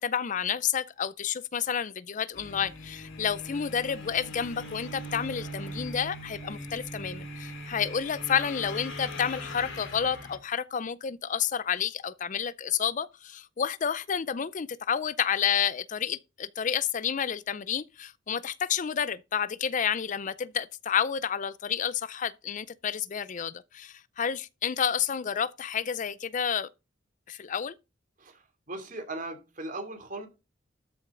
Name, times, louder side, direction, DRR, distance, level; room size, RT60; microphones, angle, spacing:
voice 1, 0.0-26.7 27.3-27.7, left 8 dB, 40° left, 0.4 m, -30 dB
sound 1, 2.3-10.4, equal, 85° left, 4.5 m, -40 dB
voice 2, 28.2-30.3, right 2 dB, 45° right, 2.9 m, -38 dB
13.0 x 7.8 x 3.8 m
head